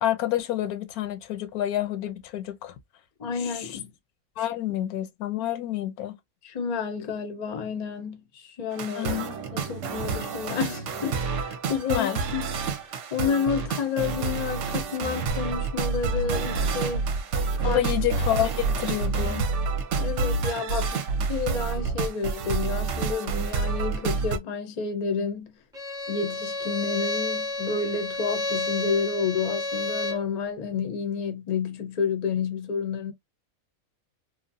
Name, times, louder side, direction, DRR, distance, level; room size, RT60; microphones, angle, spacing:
voice 1, 0.0-2.8 3.4-3.7 4.4-6.2 9.0-9.3 11.9-12.2 17.6-19.5, left 13 dB, 85° left, 1.1 m, -28 dB
voice 2, 3.2-3.9 4.7-4.8 6.4-9.2 9.5-12.5 13.1-17.1 17.6-17.9 20.0-25.5 26.1-33.1, left 6 dB, 45° left, 0.5 m, -30 dB
sound 1, 8.7-24.4, right 4 dB, 65° right, 0.9 m, -28 dB
Bowed string instrument, 25.7-30.3, left 2 dB, 5° right, 0.5 m, -31 dB
3.1 x 2.1 x 2.6 m
omnidirectional pair, 1.5 m